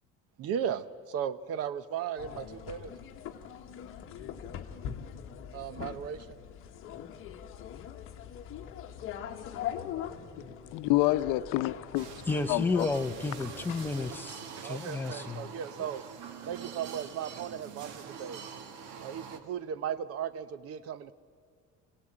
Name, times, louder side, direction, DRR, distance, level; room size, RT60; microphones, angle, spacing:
voice 1, 0.4-2.9 5.5-6.4 14.6-16.0 16.5-18.4 19.0-21.1, right 8 dB, 50° right, 0.8 m, -36 dB
sound 1, 2.2-14.2, left 9 dB, 45° left, 1.3 m, -42 dB
voice 2, 10.7-12.9, left 17 dB, 85° left, 0.8 m, -28 dB
sound 2, 11.9-19.4, right 7 dB, 85° right, 1.9 m, -45 dB
voice 3, 12.3-15.5, left 3 dB, 5° left, 0.6 m, -32 dB
24.5 x 17.0 x 8.8 m
cardioid pair, 180°, 30 cm